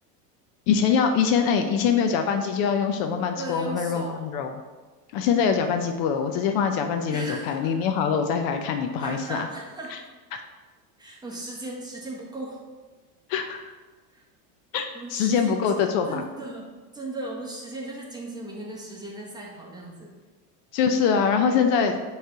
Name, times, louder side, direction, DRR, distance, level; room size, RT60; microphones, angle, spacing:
voice 1, 0.7-4.5 5.1-9.5 9.9-10.0 10.3-10.4 13.3-13.6 14.7-16.2 20.7-22.0, left 6 dB, 60° left, 6 dB, 0.7 m, -23 dB
voice 2, 3.4-4.3 7.1-7.9 9.0-9.9 11.0-12.6 14.1-14.2 14.9-15.7 16.1-16.7 16.9-20.1, right 2 dB, 10° right, -3 dB, 1.2 m, -37 dB
6.4 x 3.3 x 4.6 m, 1.3 s
supercardioid pair, 125°, 46 cm